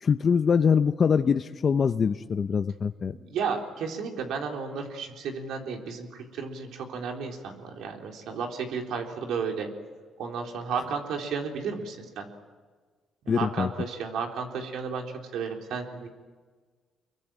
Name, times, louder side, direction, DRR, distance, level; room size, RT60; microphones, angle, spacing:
voice 1, 0.0-3.2 13.3-13.7, left 6 dB, 45° left, 10 dB, 0.7 m, -23 dB
voice 2, 3.1-9.7 10.2-12.3 13.2-15.0 15.3-16.1, right 5 dB, 80° right, 2 dB, 3.9 m, -33 dB
26.0 x 23.0 x 9.2 m, 1.5 s
cardioid pair, 90°, 0 cm